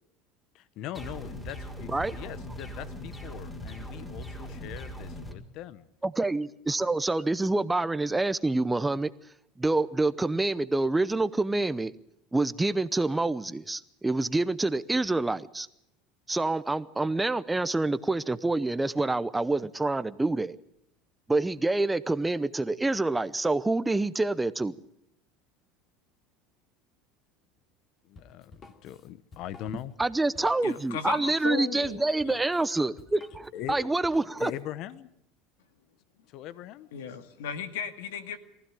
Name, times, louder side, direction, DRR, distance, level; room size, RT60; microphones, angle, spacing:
voice 1, 0.5-5.9 28.0-29.9 33.5-33.9 34.4-35.1 36.3-36.9, left 12 dB, 55° left, 1.1 m, -41 dB
sound 1, 0.9-5.3, equal, 15° left, 4.4 m, -40 dB
voice 2, 6.0-9.1 9.6-11.9 12.3-15.7 16.3-20.6 21.3-24.8 30.0-34.5, right 2 dB, 10° right, 0.7 m, -27 dB
Drum kit, 28.2-34.6, left 3 dB, 35° left, 2.6 m, -53 dB
voice 3, 30.6-32.4 36.9-38.4, left 7 dB, 90° left, 2.1 m, -36 dB
23.5 x 15.5 x 9.1 m
supercardioid pair, 115°, 0 cm